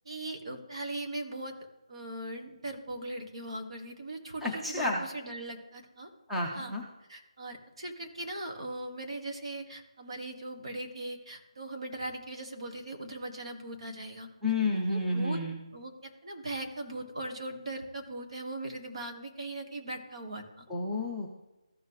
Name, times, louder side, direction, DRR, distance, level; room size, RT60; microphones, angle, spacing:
voice 1, 0.1-1.5 1.9-6.1 6.5-6.7 7.1-14.3 14.9-15.4 15.7-20.7, right 1 dB, 55° right, 4 dB, 1.8 m, -39 dB
voice 2, 4.4-5.0 6.3-6.8 14.4-15.6 20.7-21.3, left 2 dB, ahead, -4 dB, 0.7 m, -30 dB
14.5 x 5.4 x 3.2 m, 1.0 s
figure-of-eight pair, 165°, 3 cm